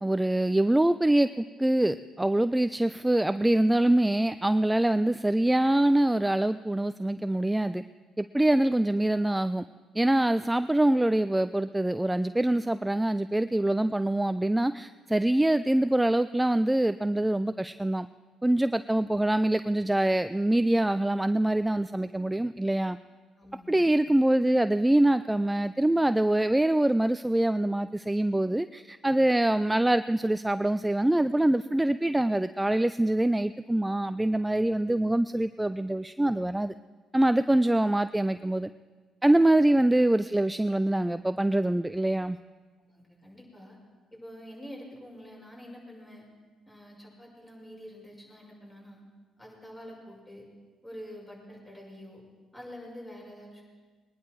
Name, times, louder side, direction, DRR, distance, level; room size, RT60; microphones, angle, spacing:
voice 1, 0.0-7.8 8.2-9.6 9.9-18.1 18.4-23.0 23.7-36.7 37.1-38.7 39.2-42.4, right 1 dB, 10° right, 12 dB, 0.4 m, -24 dB
voice 2, 23.4-23.9 39.3-39.8 42.9-43.8 44.1-46.3 46.6-49.0 49.4-50.5 50.8-52.2 52.5-53.6, equal, 20° left, -3 dB, 6.0 m, -46 dB
21.5 x 10.5 x 4.7 m, 1.4 s
supercardioid pair, 70°, 0 cm